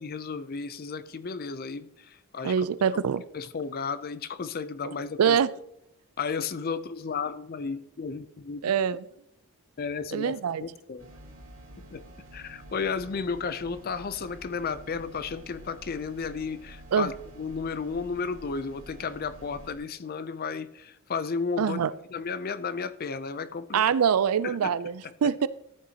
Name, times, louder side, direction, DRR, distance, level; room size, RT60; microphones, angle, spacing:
voice 1, 0.0-2.7 2.9-3.0 3.3-5.4 6.2-8.6 9.8-10.3 10.6-11.1 11.7-12.0 12.3-21.8 22.1-23.8 24.4-24.8 25.0-25.1, left 5 dB, 45° left, 0.5 m, -33 dB
voice 2, 2.4-3.2 4.9-5.0 5.2-5.5 8.6-9.0 10.1-10.6 16.9-17.1 21.6-21.9 23.7-25.5, right 7 dB, 80° right, 0.4 m, -24 dB
sound 1, 11.0-19.8, right 1 dB, 60° right, 2.7 m, -49 dB
14.0 x 8.7 x 2.8 m
head